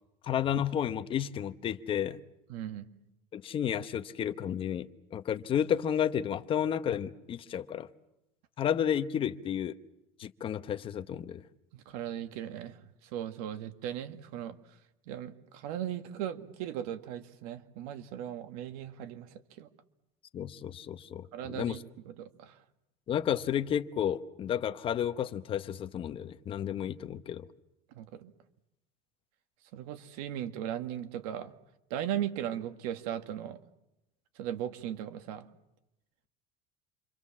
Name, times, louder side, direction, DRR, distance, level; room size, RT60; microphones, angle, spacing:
voice 1, 0.2-2.2 3.3-7.9 8.6-9.8 10.2-11.4 20.3-21.8 23.1-27.5, left 9 dB, 30° left, 1.0 m, -32 dB
voice 2, 2.5-2.9 11.9-12.8 13.1-14.6 15.1-19.3 19.6-19.7 21.3-21.8 22.1-22.6 28.0-28.3 29.7-31.5 31.9-33.6 34.4-35.5, right 11 dB, 90° right, 2.1 m, -37 dB
28.5 x 25.0 x 7.4 m
cardioid pair, 165°, 19 cm